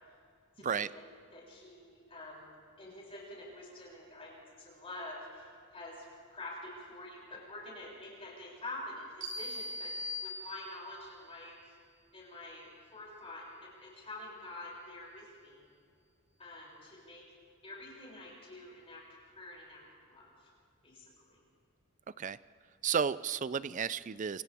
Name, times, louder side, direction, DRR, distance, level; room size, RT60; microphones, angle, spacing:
voice 1, 0.6-1.0 1.3-9.9 10.2-11.8 12.1-13.4 13.8-15.7 16.4-17.2 17.6-19.0 19.3-20.5 20.8-21.4, left 2 dB, 25° left, -5 dB, 7.0 m, -47 dB
sound 1, 9.2-11.0, left 1 dB, 55° right, 4.8 m, -40 dB
voice 2, 22.8-24.4, right 7 dB, 35° right, 17 dB, 0.4 m, -32 dB
28.5 x 27.5 x 3.6 m, 2.1 s
head